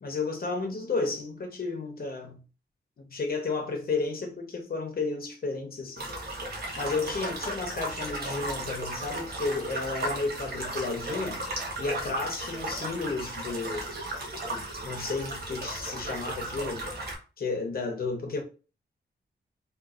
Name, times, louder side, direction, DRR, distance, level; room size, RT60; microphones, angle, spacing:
voice 1, 0.0-2.4 3.0-6.1 6.8-11.4 11.8-13.9 14.5-16.8 17.4-18.4, left 3 dB, 55° left, 0.9 m, -32 dB
sound 1, 6.0-17.2, right 1 dB, 60° right, 1.0 m, -35 dB
3.7 x 2.5 x 2.5 m
wide cardioid pair, 95°, 19 cm